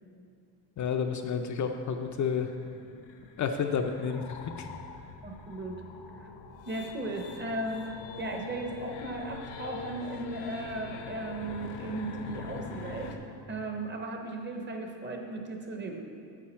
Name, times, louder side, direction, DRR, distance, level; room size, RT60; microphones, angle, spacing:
voice 1, 0.8-2.5 3.4-4.7, left 6 dB, 45° left, 4 dB, 0.4 m, -30 dB
sound 1, 1.6-13.2, left 5 dB, 85° left, 0.9 m, -44 dB
voice 2, 5.2-5.8 6.1-6.3 6.7-13.2 13.5-16.0, right 2 dB, 25° right, 3 dB, 0.7 m, -36 dB
9.2 x 7.8 x 4.3 m, 2.4 s
cardioid pair, 175°, 42 cm